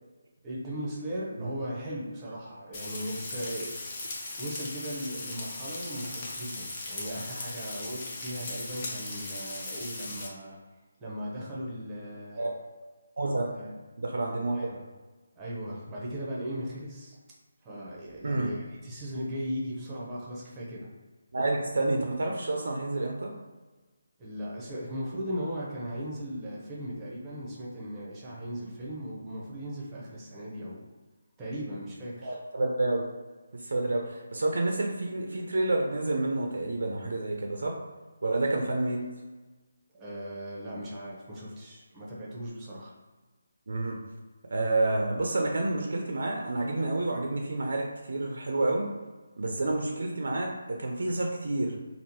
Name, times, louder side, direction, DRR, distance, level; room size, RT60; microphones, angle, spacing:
voice 1, 0.4-10.6 11.0-12.5 13.5-13.7 14.5-14.8 15.4-17.2 17.6-20.9 24.2-30.9 31.4-32.4 39.9-42.9, equal, 15° right, -6 dB, 0.8 m, -38 dB
Frying (food), 2.7-10.3, left 2 dB, 30° left, 0.7 m, -38 dB
voice 2, 13.2-13.5 14.0-14.6 18.2-18.5 21.3-23.3 32.2-33.0 33.5-37.7 38.2-39.0 43.7-44.0 44.5-48.9 49.4-51.8, right 2 dB, 60° right, 1 dB, 0.4 m, -29 dB
3.6 x 2.0 x 2.9 m, 1.3 s
figure-of-eight pair, 150°, 0 cm